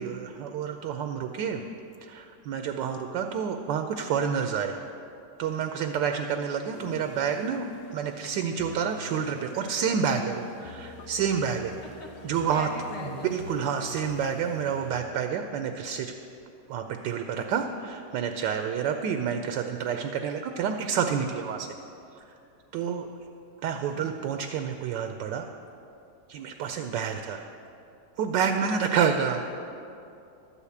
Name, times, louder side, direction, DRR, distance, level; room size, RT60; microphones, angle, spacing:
voice 1, 0.0-1.6 2.0-4.8 5.4-7.6 7.9-11.7 12.2-12.7 13.0-16.2 16.7-21.7 22.3-22.4 22.7-23.1 23.6-25.5 26.3-27.5 28.2-29.4, right 7 dB, 75° right, 6 dB, 1.2 m, -29 dB
sound 1, 6.7-15.0, left 2 dB, 90° left, 1.6 m, -43 dB
voice 2, 12.5-13.4 23.9-24.1 28.7-28.9, left 2 dB, 70° left, 0 dB, 2.2 m, -40 dB
12.5 x 5.7 x 8.3 m, 2.7 s
omnidirectional pair, 2.0 m